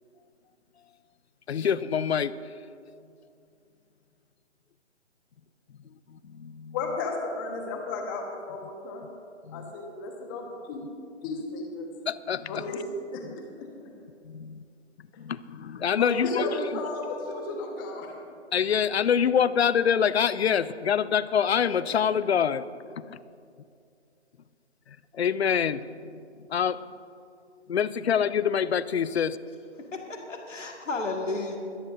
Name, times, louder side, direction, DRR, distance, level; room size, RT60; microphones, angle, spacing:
voice 1, 1.5-2.3 6.1-6.8 9.5-9.7 12.1-12.6 14.2-14.6 15.2-16.4 18.5-22.6 23.0-23.2 25.1-25.9 26.5-26.8 27.7-29.4, left 8 dB, 60° left, 17 dB, 0.6 m, -25 dB
voice 2, 6.7-9.1 9.5-10.9 11.2-11.9 12.5-12.8 13.1-13.2 16.0-18.1, left 3 dB, 20° left, 2 dB, 1.3 m, -33 dB
voice 3, 29.9-31.6, left 3 dB, 90° left, 1 dB, 2.0 m, -32 dB
22.0 x 13.0 x 2.7 m, 2.4 s
figure-of-eight pair, 150°, 36 cm